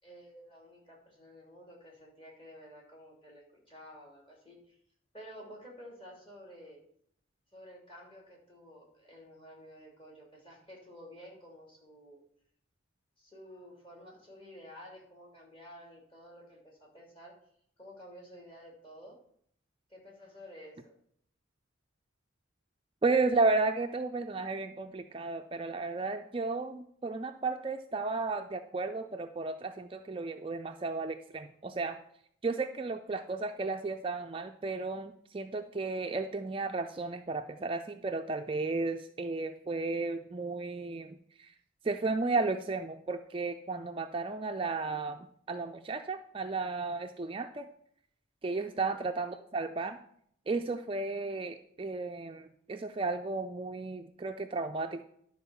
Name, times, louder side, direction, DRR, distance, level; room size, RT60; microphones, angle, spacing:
voice 1, 0.0-4.8 5.1-6.8 7.5-12.2 13.2-17.3 17.8-19.2 19.9-20.9 48.7-49.0, equal, 25° left, -2 dB, 2.9 m, -52 dB
voice 2, 23.0-32.0 32.4-41.5 41.8-47.7 48.4-50.0 50.5-55.0, right 3 dB, 25° right, 6 dB, 0.4 m, -33 dB
11.0 x 4.5 x 7.0 m, 0.66 s
head